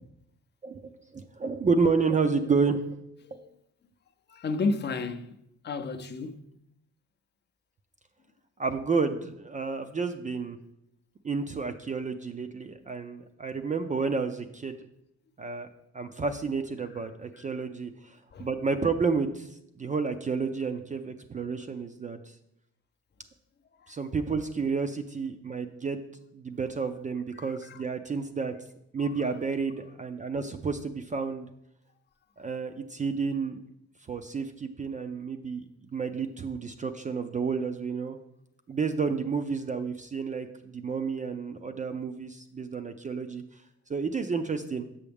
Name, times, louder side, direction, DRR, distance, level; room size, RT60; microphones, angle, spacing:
voice 1, 0.6-2.8 8.6-10.6 11.2-14.8 15.4-15.7 15.9-19.5 19.8-22.2 23.9-26.0 26.3-28.5 28.9-31.5 32.4-33.6 34.1-38.2 38.7-43.4 43.9-44.9, right 4 dB, 25° right, 0.4 m, -30 dB
voice 2, 4.3-6.5 18.3-18.5 23.8-23.9 27.4-27.8, left 3 dB, 35° left, 0.6 m, -33 dB
7.0 x 6.0 x 3.5 m
cardioid pair, 90°, 30 cm